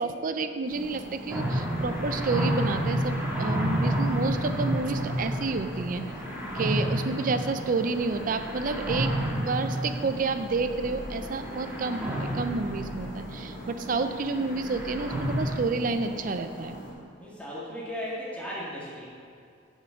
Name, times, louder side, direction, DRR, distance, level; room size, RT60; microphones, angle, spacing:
voice 1, 0.0-6.0 6.5-16.8, right 3 dB, 45° right, 9 dB, 0.4 m, -30 dB
sound 1, 0.7-16.9, equal, 75° left, 2.5 m, -42 dB
sound 2, 1.3-15.6, equal, 10° right, 1.5 m, -31 dB
voice 2, 17.2-19.0, equal, 5° left, -7 dB, 2.1 m, -36 dB
7.3 x 6.9 x 5.8 m, 2.3 s
head